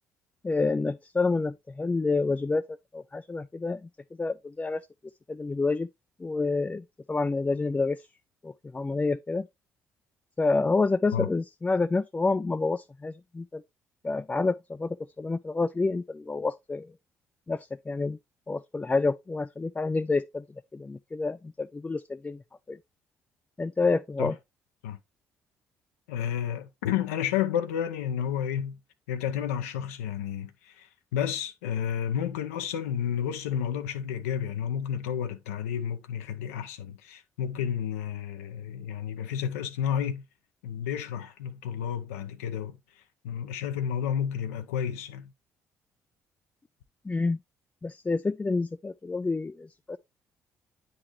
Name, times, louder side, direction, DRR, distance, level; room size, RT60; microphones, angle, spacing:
voice 1, 0.4-2.6 2.9-3.9 4.2-4.8 5.3-5.9 6.2-8.1 8.4-9.5 10.4-13.6 14.0-16.9 17.5-18.2 18.5-20.4 20.7-22.4 22.7-22.8 23.6-24.4 47.0-47.4 47.8-50.0, left 3 dB, 20° left, 0.3 m, -28 dB
voice 2, 26.1-28.8 29.1-40.2 40.6-45.3, left 9 dB, 85° left, 0.5 m, -31 dB
8.6 x 3.8 x 3.0 m
hypercardioid pair, 50°, 7 cm